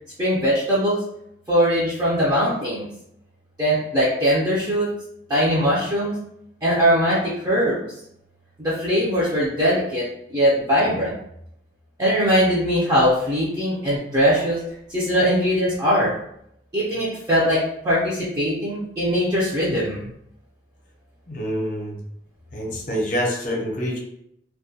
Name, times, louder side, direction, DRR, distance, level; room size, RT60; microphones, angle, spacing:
voice 1, 0.2-1.0 1.5-2.9 3.6-4.9 5.3-6.1 6.6-7.8 8.6-11.2 12.0-14.6 14.9-16.1 16.7-20.1, equal, 20° right, -8 dB, 0.5 m, -21 dB
voice 2, 21.3-22.0 22.5-24.0, equal, 50° left, -2 dB, 0.6 m, -26 dB
2.3 x 2.2 x 2.7 m, 0.74 s
head